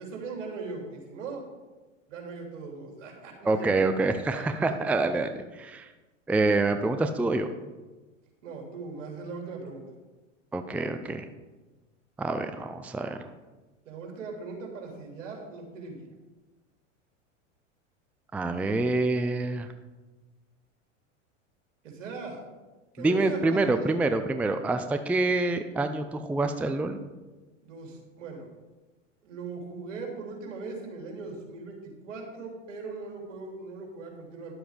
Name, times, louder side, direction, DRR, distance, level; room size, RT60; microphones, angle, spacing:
voice 1, 0.0-1.4 2.1-3.7 4.3-4.8 8.4-9.8 13.8-16.1 21.8-22.4 22.9-23.9 27.6-28.5 29.2-34.5, right 4 dB, 70° right, 0 dB, 3.4 m, -39 dB
voice 2, 3.4-5.9 6.3-7.5 10.5-11.2 12.2-13.2 18.3-19.7 23.0-27.0, right 2 dB, 5° right, 8 dB, 0.5 m, -26 dB
11.0 x 7.7 x 5.1 m, 1.2 s
hypercardioid pair, 95°, 38 cm